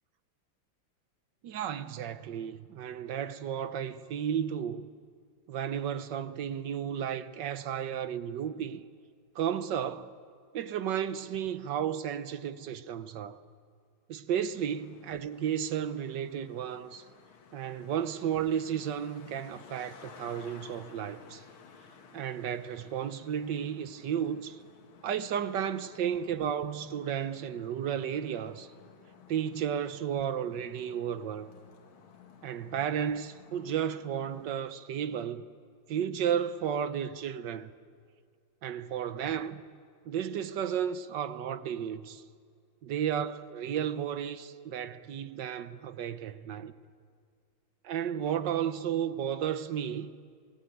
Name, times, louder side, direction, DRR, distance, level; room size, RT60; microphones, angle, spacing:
voice 1, 1.4-4.9 5.5-8.8 9.3-10.1 10.5-13.4 14.1-17.1 17.5-21.4 22.1-24.6 25.0-28.7 29.3-31.5 32.4-35.5 35.9-37.7 38.6-39.6 40.1-42.2 42.8-46.7 47.8-50.1, right 9 dB, 65° right, 1.5 m, -33 dB
Traffic noise roadway noise, 14.5-34.5, left 6 dB, 90° left, 2.4 m, -55 dB
27.5 x 19.0 x 9.2 m
omnidirectional pair, 2.2 m